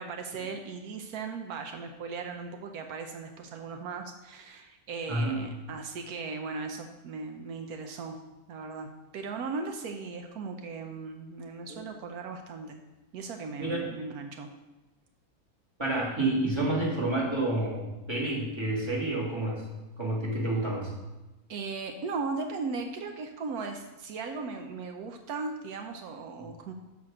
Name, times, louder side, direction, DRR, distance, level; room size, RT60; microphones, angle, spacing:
voice 1, 0.0-8.2 8.5-12.8 13.1-14.5 21.5-26.7, right 4 dB, 80° right, 5 dB, 1.2 m, -37 dB
voice 2, 5.1-5.4 11.7-11.9 13.6-13.9 15.8-19.6 20.0-20.9, right 2 dB, 20° right, -4 dB, 2.0 m, -29 dB
6.1 x 5.9 x 6.3 m, 1.1 s
omnidirectional pair, 1.6 m